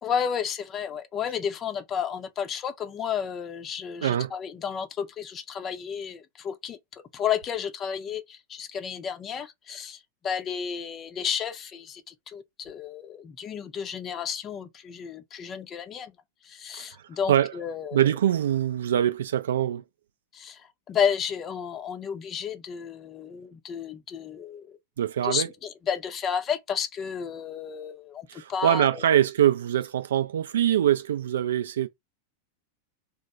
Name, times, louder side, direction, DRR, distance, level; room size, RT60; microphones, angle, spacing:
voice 1, 0.0-16.1 16.4-18.0 20.3-24.8 25.2-29.2, left 7 dB, 25° left, 0.5 m, -32 dB
voice 2, 4.0-4.3 17.3-17.5 17.9-19.8 25.0-25.5 28.3-31.9, right 11 dB, 60° right, 0.4 m, -23 dB
3.0 x 2.1 x 3.5 m
figure-of-eight pair, 90°, 0 cm